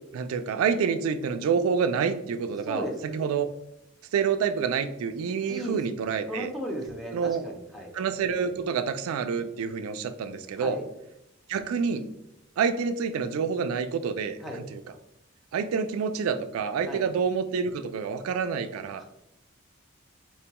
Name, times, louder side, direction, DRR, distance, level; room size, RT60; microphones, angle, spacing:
voice 1, 0.1-3.5 4.1-6.5 7.1-7.4 7.9-10.8 11.5-12.1 12.6-14.8 15.5-19.0, right 6 dB, 90° right, 11 dB, 0.3 m, -28 dB
voice 2, 2.6-3.2 5.5-5.8 6.3-7.9 10.6-10.8 14.4-14.6 16.9-17.1 19.0-19.1, equal, ahead, -2 dB, 0.5 m, -35 dB
4.4 x 2.2 x 2.8 m, 0.84 s
head